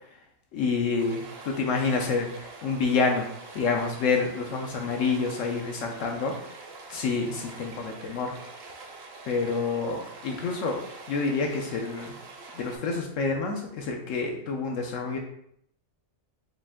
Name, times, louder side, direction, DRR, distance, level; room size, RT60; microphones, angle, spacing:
voice 1, 0.5-3.3 3.5-6.3 6.9-8.3 9.3-10.8 11.1-12.1 12.5-15.2, left 4 dB, 75° left, 2 dB, 1.0 m, -28 dB
Stream, 1.0-12.8, right 3 dB, 60° right, 0.9 m, -45 dB
5.1 x 2.5 x 3.6 m, 0.72 s
omnidirectional pair, 1.4 m